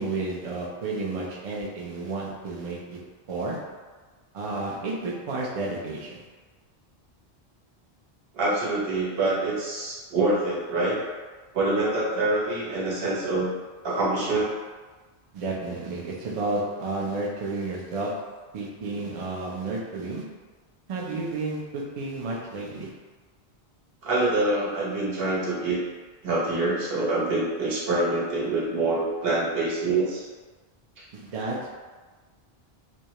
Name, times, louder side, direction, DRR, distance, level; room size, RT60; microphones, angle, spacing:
voice 1, 0.0-3.0 3.3-3.6 4.3-6.3 15.3-18.1 18.5-20.2 20.9-22.9 31.1-31.7, right 3 dB, 55° right, -3 dB, 0.4 m, -31 dB
voice 2, 8.3-11.0 11.5-13.5 13.8-14.5 24.0-25.8 26.2-30.2 31.0-31.1, right 2 dB, 70° right, -6 dB, 1.0 m, -25 dB
2.2 x 2.0 x 2.8 m, 1.4 s
omnidirectional pair, 1.0 m